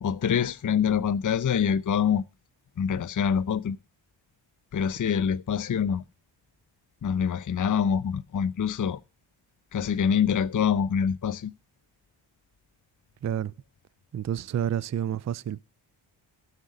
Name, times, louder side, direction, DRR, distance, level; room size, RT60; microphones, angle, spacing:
voice 1, 0.0-2.2 2.8-3.8 4.7-6.0 7.0-9.0 9.7-11.5, left 7 dB, 40° left, 0.7 m, -25 dB
voice 2, 13.2-13.5 14.1-15.6, right 10 dB, 35° right, 0.5 m, -29 dB
13.0 x 6.7 x 6.3 m
cardioid pair, 45°, 50 cm